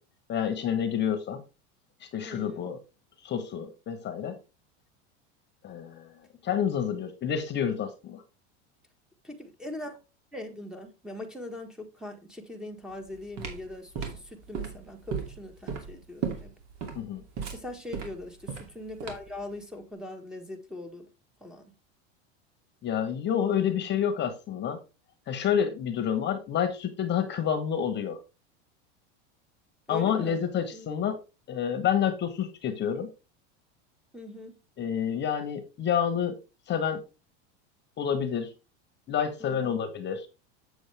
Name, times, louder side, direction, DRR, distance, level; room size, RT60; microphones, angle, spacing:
voice 1, 0.3-1.4 2.0-2.8 3.2-4.4 5.6-6.1 6.4-8.2 16.9-17.2 22.8-24.8 25.3-28.2 29.9-31.2 31.5-33.1 34.8-36.4 36.7-37.0 38.0-38.5 39.1-40.3, left 8 dB, 30° left, 1.2 m, -28 dB
voice 2, 2.2-2.8 9.2-10.0 10.3-16.5 17.5-21.1 21.4-21.6 29.9-30.4 30.7-30.9 34.1-34.6 39.4-39.7, left 2 dB, ahead, 1.4 m, -41 dB
sound 1, 12.9-19.4, right 6 dB, 50° right, 2.6 m, -36 dB
7.9 x 7.1 x 3.4 m
supercardioid pair, 120°, 34 cm